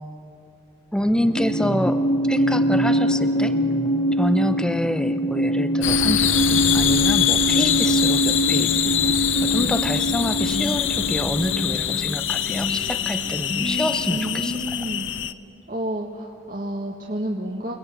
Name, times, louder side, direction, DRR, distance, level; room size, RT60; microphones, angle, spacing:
voice 1, 0.9-3.6 4.1-14.6, equal, 5° left, 10 dB, 0.8 m, -27 dB
sound 1, 1.2-14.5, right 1 dB, 35° left, 2.1 m, -24 dB
sound 2, 5.8-15.3, left 11 dB, 80° left, 0.7 m, -24 dB
voice 2, 14.0-15.1 15.7-17.7, right 1 dB, 45° right, -2 dB, 1.8 m, -30 dB
28.5 x 20.5 x 9.3 m, 2.6 s
head